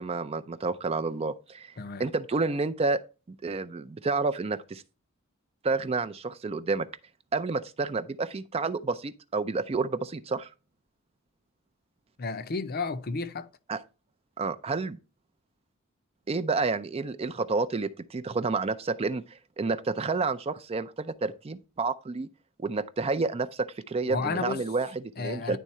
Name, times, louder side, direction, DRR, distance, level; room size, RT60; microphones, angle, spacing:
voice 1, 0.0-1.7 2.0-3.0 3.4-4.8 5.6-6.9 7.3-10.5 13.7-13.8 14.4-15.0 16.3-22.3 22.6-25.6, right 3 dB, 30° right, 0.4 m, -30 dB
voice 2, 1.8-2.1 12.2-13.5 24.1-24.6 25.2-25.6, left 4 dB, 45° left, 0.6 m, -32 dB
10.0 x 3.7 x 4.2 m
head